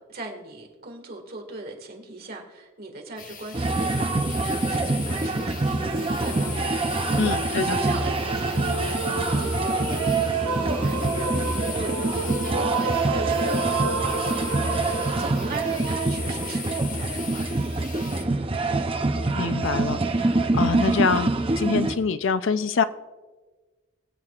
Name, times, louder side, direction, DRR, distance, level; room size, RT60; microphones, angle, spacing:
voice 1, 0.0-5.6 6.2-6.5 7.0-14.6 15.2-17.5 18.1-18.4, right 2 dB, 45° right, 2 dB, 2.0 m, -39 dB
sound 1, 3.2-18.2, left 7 dB, 40° left, 0.8 m, -38 dB
sound 2, 3.5-21.9, right 2 dB, 25° right, 0.6 m, -25 dB
sound 3, 5.6-16.6, right 3 dB, 85° right, 0.9 m, -32 dB
voice 2, 7.2-7.8 19.3-20.0 20.3-21.3 21.6-22.8, left 5 dB, 60° left, 13 dB, 0.5 m, -25 dB
22.0 x 7.8 x 2.4 m, 1.3 s
head